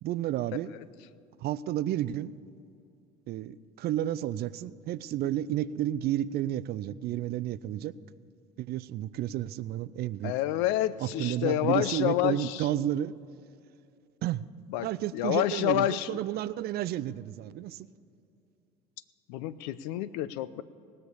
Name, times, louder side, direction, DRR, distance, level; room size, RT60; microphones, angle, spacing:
voice 1, 0.0-0.7 1.4-2.3 3.3-7.9 8.6-10.3 11.0-13.1 14.2-14.5 14.8-17.9, right 12 dB, 50° right, 17 dB, 0.5 m, -31 dB
voice 2, 10.2-12.7 14.7-14.9 15.1-16.2 19.3-20.6, left 13 dB, 70° left, 17 dB, 0.6 m, -28 dB
19.5 x 6.6 x 7.0 m, 2.5 s
hypercardioid pair, 75°, 20 cm